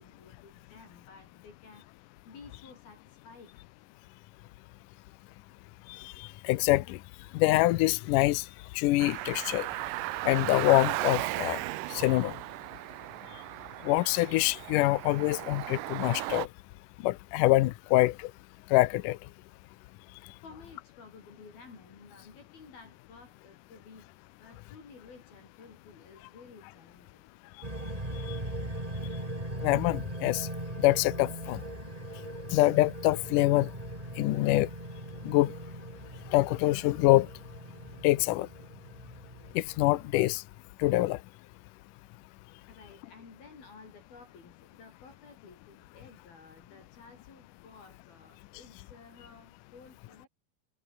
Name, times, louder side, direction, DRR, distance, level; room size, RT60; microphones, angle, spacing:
voice 1, 0.0-3.6 20.2-24.1 24.4-27.2 42.7-50.3, left 4 dB, 65° left, 8.2 m, -53 dB
voice 2, 6.2-7.0 7.3-8.4 8.8-9.7 10.3-11.6 11.9-12.3 13.9-16.5 17.0-18.1 18.7-19.2 29.6-30.5 30.8-31.6 32.5-33.7 34.2-34.7 35.2-35.5 36.3-37.3 38.0-38.5 39.6-40.4 40.8-41.2, left 18 dB, 80° left, 1.9 m, -25 dB
Car, 9.0-16.5, right 19 dB, 85° right, 1.9 m, -36 dB
sound 1, 27.6-40.1, right 1 dB, 10° right, 4.3 m, -40 dB
omnidirectional pair, 4.7 m